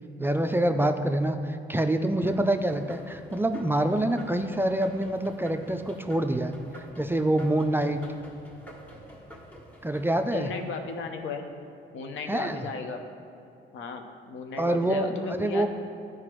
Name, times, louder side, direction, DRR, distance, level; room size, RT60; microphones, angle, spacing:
voice 1, 0.2-8.0 9.8-10.5 12.3-12.7 14.6-15.7, right 1 dB, 10° right, 7 dB, 0.3 m, -26 dB
sound 1, 2.3-11.4, right 1 dB, 10° left, 1.4 m, -48 dB
voice 2, 10.3-11.4 11.9-13.0 13.7-15.7, left 5 dB, 80° left, 5 dB, 0.8 m, -35 dB
11.0 x 4.8 x 3.1 m, 2.7 s
cardioid pair, 90°, 20 cm